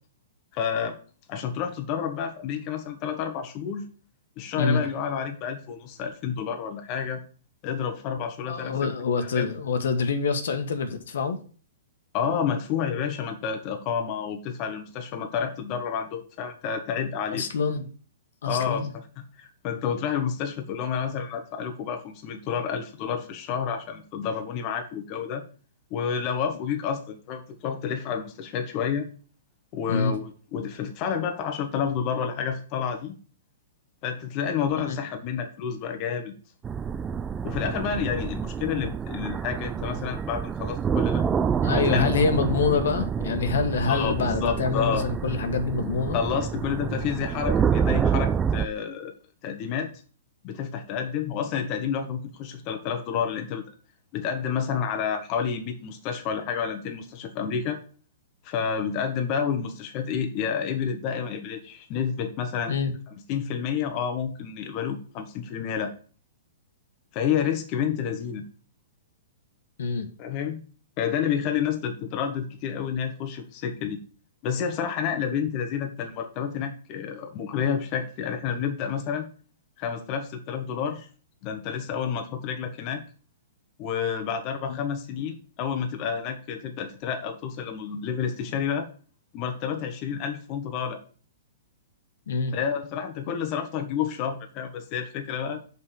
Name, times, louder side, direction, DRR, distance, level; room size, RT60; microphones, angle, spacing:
voice 1, 0.5-0.9 1.3-3.8 4.4-7.2 7.6-8.9 9.3-9.5 12.1-17.4 18.5-18.9 19.4-25.4 25.9-29.1 29.7-33.2 34.0-36.3 37.4-41.2 41.7-42.0 43.9-45.0 46.1-49.1 49.4-49.9 50.4-53.6 54.1-57.8 58.4-62.7 63.3-65.9 67.1-68.4 70.2-70.6 71.0-74.0 74.4-79.3 79.8-81.1 81.4-83.0 83.8-88.9 89.3-91.0 92.5-95.6, left 7 dB, 35° left, 5 dB, 1.2 m, -29 dB
voice 2, 8.5-11.4 17.3-17.9 18.4-18.9 29.9-30.2 34.7-35.0 41.6-46.2 62.7-62.9 69.8-70.1 84.7-84.8 92.3-92.6, left 5 dB, 75° left, 7 dB, 1.4 m, -26 dB
sound 1, 36.6-48.7, right 7 dB, 15° right, 0.4 m, -27 dB
5.6 x 5.3 x 6.5 m, 0.40 s
hypercardioid pair, 150°, 0 cm